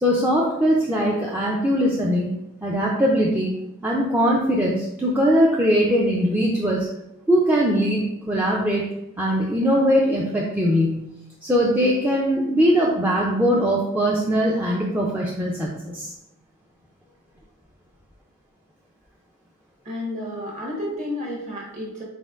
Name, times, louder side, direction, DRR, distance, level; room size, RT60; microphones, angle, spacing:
voice 1, 0.0-2.3 2.6-3.5 3.8-6.9 7.3-8.9 9.2-11.1 11.4-16.1, equal, 10° right, -4 dB, 0.4 m, -21 dB
voice 2, 19.8-22.0, left 1 dB, 35° right, -3 dB, 1.1 m, -31 dB
4.1 x 3.8 x 2.4 m, 0.86 s
head